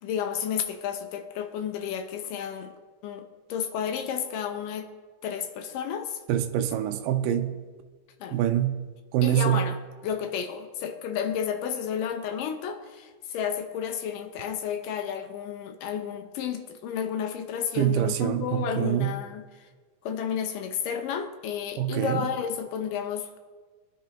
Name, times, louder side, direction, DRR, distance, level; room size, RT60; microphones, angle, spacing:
voice 1, 0.0-2.7 3.0-4.9 5.2-6.2 8.2-8.4 9.2-19.7 20.0-23.4, left 8 dB, 80° left, 2.4 m, -32 dB
voice 2, 6.3-7.7 8.3-9.7 17.8-19.1 21.8-22.3, right 11 dB, 80° right, 2.4 m, -25 dB
21.0 x 10.0 x 3.0 m
omnidirectional pair, 3.9 m